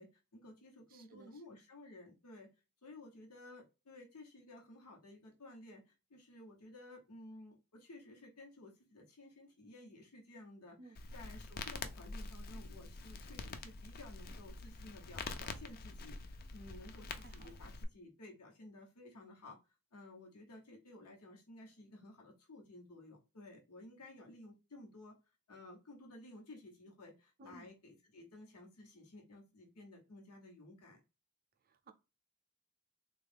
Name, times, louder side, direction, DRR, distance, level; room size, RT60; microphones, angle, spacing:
voice 1, 0.0-2.5 2.8-19.6 19.9-25.2 25.5-31.0, left 2 dB, 85° left, 1.0 m, -55 dB
voice 2, 0.9-1.3 10.8-11.0 17.2-17.6 27.4-27.7 31.6-31.9, right 2 dB, 40° right, 0.5 m, -57 dB
Crackle, 10.9-17.8, left 3 dB, 40° left, 0.4 m, -46 dB
3.5 x 2.3 x 3.3 m
head